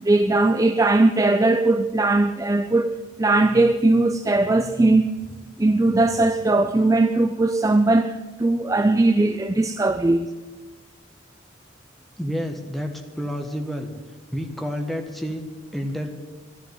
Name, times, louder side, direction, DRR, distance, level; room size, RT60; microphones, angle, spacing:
voice 1, 0.0-5.1 5.6-10.3, right 2 dB, 15° right, 0.4 m, -19 dB
voice 2, 12.2-13.9 14.3-16.1, equal, ahead, 1.4 m, -29 dB
12.0 x 11.0 x 9.3 m
head